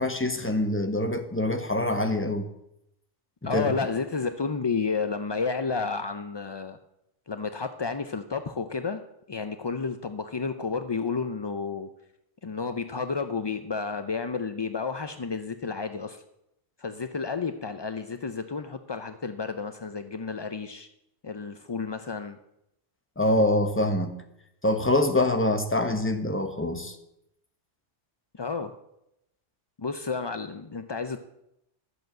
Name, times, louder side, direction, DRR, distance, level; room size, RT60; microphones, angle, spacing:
voice 1, 0.0-2.5 3.5-3.7 23.2-24.1 24.6-27.0, left 1 dB, 10° left, 6 dB, 1.1 m, -25 dB
voice 2, 3.4-6.8 7.3-9.0 9.3-11.9 12.4-16.2 16.8-20.9 21.2-22.4 28.4-28.7 29.8-31.2, left 5 dB, 45° left, 8 dB, 0.3 m, -31 dB
11.5 x 8.0 x 7.6 m, 0.82 s
omnidirectional pair, 1.2 m